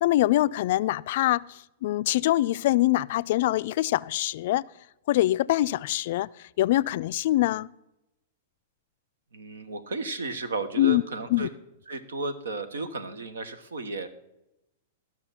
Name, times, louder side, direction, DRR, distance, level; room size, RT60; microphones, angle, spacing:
voice 1, 0.0-4.6 5.1-6.3 6.6-7.7 10.8-11.0 11.3-11.5, left 15 dB, 60° left, 0.3 m, -24 dB
voice 2, 9.3-11.5 11.9-14.1, right 3 dB, 80° right, 1.2 m, -33 dB
14.0 x 6.0 x 5.8 m
hypercardioid pair, 115°, 0 cm